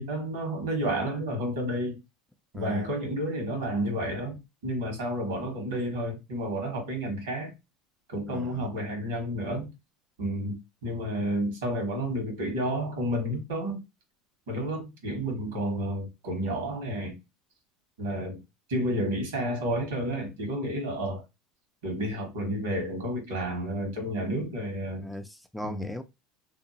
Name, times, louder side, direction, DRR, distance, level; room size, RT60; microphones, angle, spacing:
voice 1, 0.0-2.0 2.5-7.5 8.1-9.7 10.2-13.8 14.5-17.2 18.0-18.4 18.7-21.2 21.8-25.1 25.6-25.9, equal, 85° right, 1.4 m, -31 dB
voice 2, 2.5-2.9 8.3-8.6 25.0-26.0, equal, ahead, 0.4 m, -38 dB
2.7 x 2.2 x 2.8 m
hypercardioid pair, 90°, 0 cm